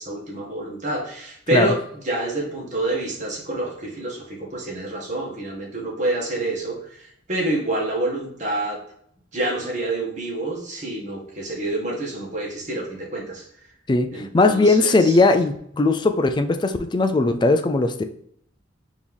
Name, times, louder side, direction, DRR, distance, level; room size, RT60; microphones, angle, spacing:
voice 1, 0.0-8.8 9.3-13.5 14.1-15.3, right 2 dB, 40° right, -3 dB, 1.5 m, -27 dB
voice 2, 14.3-18.0, left 3 dB, 25° left, 8 dB, 0.3 m, -18 dB
4.3 x 3.0 x 3.4 m, 0.69 s
head